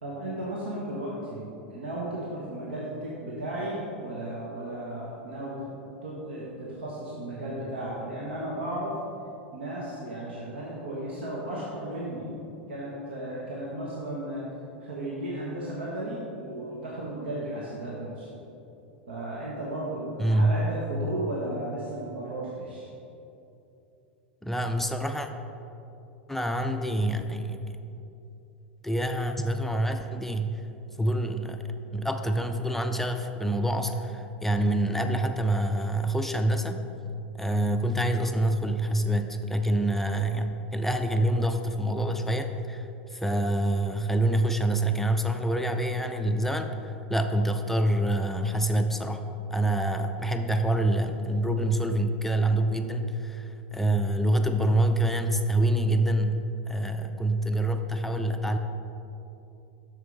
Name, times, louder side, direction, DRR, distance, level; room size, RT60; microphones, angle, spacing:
voice 1, 0.0-9.0 9.5-12.3 12.7-14.5 14.8-18.4 19.1-22.9, right 1 dB, 70° right, -5 dB, 1.3 m, -35 dB
voice 2, 20.2-20.6 24.4-25.3 26.3-27.8 28.8-30.6 31.0-31.6 31.9-36.8 37.4-49.2 49.5-56.4 56.7-58.6, right 1 dB, 5° left, 5 dB, 0.4 m, -26 dB
7.6 x 6.4 x 3.9 m, 2.8 s
figure-of-eight pair, 90°, 6 cm